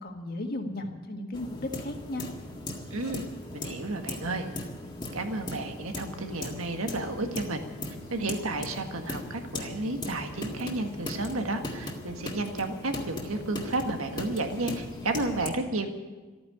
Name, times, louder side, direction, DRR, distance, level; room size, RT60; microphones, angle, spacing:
voice 1, 0.0-2.3, left 1 dB, 45° left, 4 dB, 1.7 m, -35 dB
sound 1, 1.3-15.5, left 1 dB, 20° left, 1.7 m, -38 dB
voice 2, 2.9-3.2 3.5-4.5 5.1-7.6 8.1-15.9, right 2 dB, 85° right, 5 dB, 1.7 m, -32 dB
14.0 x 9.5 x 9.9 m, 1.3 s
head